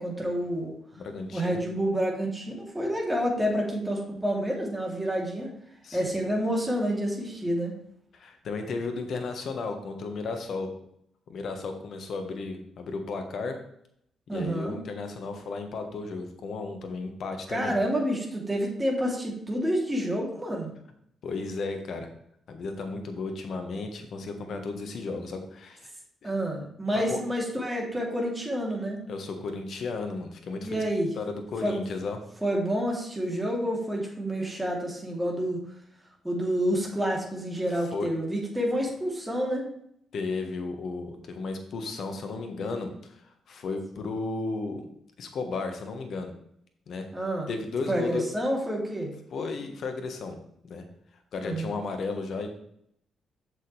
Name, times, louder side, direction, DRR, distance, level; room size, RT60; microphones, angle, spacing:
voice 1, 0.0-0.8 1.3-5.5 5.9-7.7 14.3-14.8 17.5-20.7 26.2-29.0 30.6-31.1 31.6-31.8 32.4-35.6 36.2-39.6 47.1-47.5 47.9-49.1 51.4-51.8, equal, 15° right, -1 dB, 3.3 m, -28 dB
voice 2, 0.9-1.6 5.8-6.0 8.1-10.7 11.3-13.6 14.3-17.7 21.2-22.1 22.5-25.9 26.2-26.3 26.9-27.2 29.1-30.8 31.1-32.2 37.9-38.1 40.1-44.8 45.2-46.3 46.9-47.1 47.5-48.2 49.3-50.3 50.6-50.8 51.3-52.5, left 3 dB, 60° left, 6 dB, 1.5 m, -34 dB
8.3 x 6.9 x 3.5 m, 0.71 s
hypercardioid pair, 45°, 0 cm